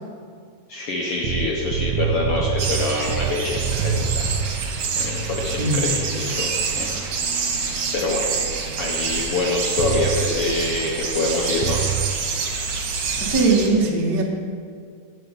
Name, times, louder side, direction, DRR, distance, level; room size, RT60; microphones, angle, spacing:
voice 1, 0.7-6.9 7.5-8.3 8.8-11.8, left 3 dB, 75° left, -2 dB, 1.3 m, -26 dB
sound 1, 1.2-4.5 9.8-10.3 11.6-12.1, right 8 dB, 90° right, 1.6 m, -25 dB
sound 2, 2.6-13.7, right 5 dB, 65° right, 2.4 m, -26 dB
voice 2, 5.6-5.9 13.2-14.2, right 3 dB, 40° right, -5 dB, 1.4 m, -20 dB
10.0 x 5.1 x 8.2 m, 2.2 s
omnidirectional pair, 3.9 m